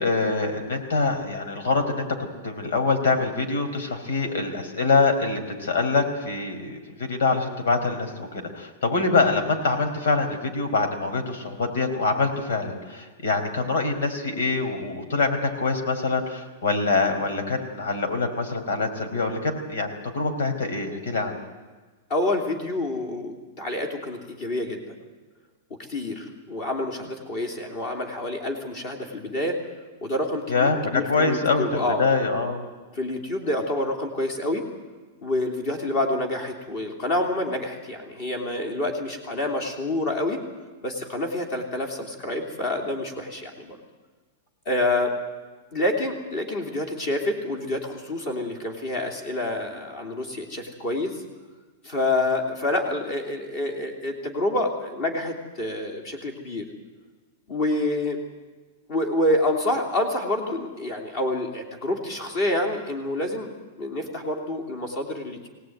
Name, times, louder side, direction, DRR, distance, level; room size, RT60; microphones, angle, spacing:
voice 1, 0.0-21.4 30.5-32.6, left 3 dB, 85° left, 6 dB, 4.7 m, -25 dB
voice 2, 22.1-24.9 25.9-29.6 30.0-32.1 32.9-34.7 35.2-40.4 40.8-43.8 44.6-45.2 45.7-51.2 51.8-56.6 57.5-58.2 58.9-63.5 63.8-65.5, left 1 dB, 30° left, 4 dB, 3.0 m, -27 dB
23.0 x 18.0 x 9.3 m, 1.3 s
supercardioid pair, 175°, 0 cm